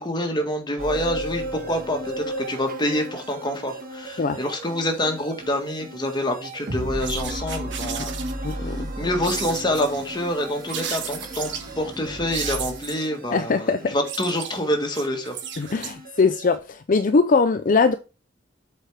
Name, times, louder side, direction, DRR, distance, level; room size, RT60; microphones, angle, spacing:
voice 1, 0.0-8.1 8.5-8.7 9.0-11.5 11.8-15.4, left 1 dB, 25° left, 1.9 m, -26 dB
sound 1, 0.8-16.6, right 1 dB, 50° right, 1.7 m, -35 dB
sound 2, 7.0-8.5 9.2-10.0 10.7-11.7 12.3-13.2 13.8-16.2, right 8 dB, 65° right, 1.5 m, -34 dB
voice 2, 8.4-8.9 13.3-13.9 15.6-17.9, left 4 dB, 45° left, 0.5 m, -21 dB
sound 3, 8.6-13.0, right 1 dB, 20° right, 1.6 m, -42 dB
7.7 x 4.5 x 5.0 m
head